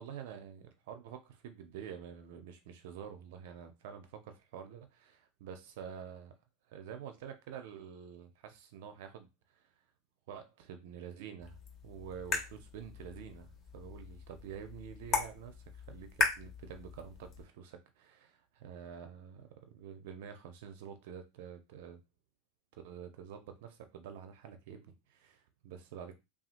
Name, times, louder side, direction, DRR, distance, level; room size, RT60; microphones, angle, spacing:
voice 1, 0.0-6.3 6.7-9.7 10.3-22.0 22.7-26.1, right 8 dB, 65° right, 0.4 m, -48 dB
sound 1, 11.4-17.4, left 4 dB, 40° left, 0.9 m, -38 dB
2.7 x 2.3 x 2.4 m
hypercardioid pair, 90°, 0 cm